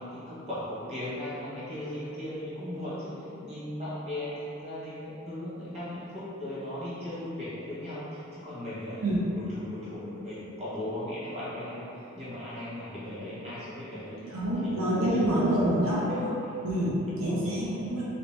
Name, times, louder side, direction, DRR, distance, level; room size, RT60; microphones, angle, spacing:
voice 1, 0.0-9.0 9.3-11.9 12.1-14.4 14.6-16.5 17.2-17.8, left 1 dB, 30° right, -12 dB, 1.2 m, -38 dB
voice 2, 14.3-16.3 16.6-18.0, right 1 dB, 75° right, -8 dB, 0.6 m, -27 dB
3.1 x 2.9 x 3.2 m, 2.9 s
head